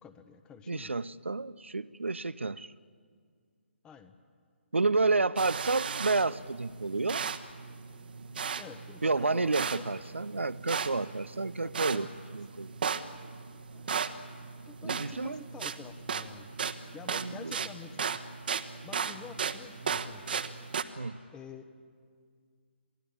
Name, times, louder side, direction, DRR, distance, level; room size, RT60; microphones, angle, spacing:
voice 1, 0.0-0.9 3.8-4.1 8.6-9.9 11.6-12.2 13.7-13.9 14.7-18.3 18.8-20.4 21.3-21.7, left 6 dB, 15° left, 10 dB, 1.2 m, -49 dB
voice 2, 0.7-2.7 4.7-7.2 9.0-12.1 12.3-12.7 14.8-15.4 17.1-17.5 21.0-21.2, right 3 dB, 80° right, 18 dB, 0.7 m, -30 dB
sound 1, 5.4-20.8, right 6 dB, 50° right, 1.3 m, -36 dB
27.5 x 18.0 x 8.8 m, 2.1 s
figure-of-eight pair, 140°, 6 cm